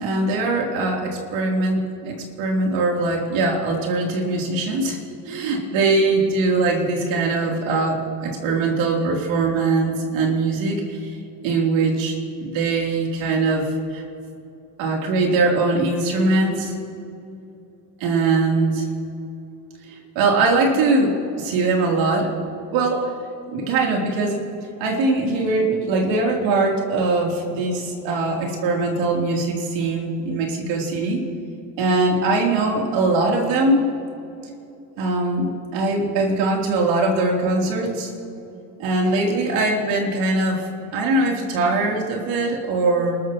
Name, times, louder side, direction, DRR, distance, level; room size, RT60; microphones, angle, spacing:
voice 1, 0.0-5.0 5.3-11.1 11.4-14.0 14.8-16.7 18.0-18.9 19.9-22.3 22.7-23.1 23.5-24.4 24.8-31.2 31.8-33.9 35.0-38.1 38.8-43.2, right 3 dB, 85° right, -1 dB, 3.6 m, -21 dB
29.0 x 13.5 x 3.1 m, 2.7 s
cardioid pair, 135°, 45 cm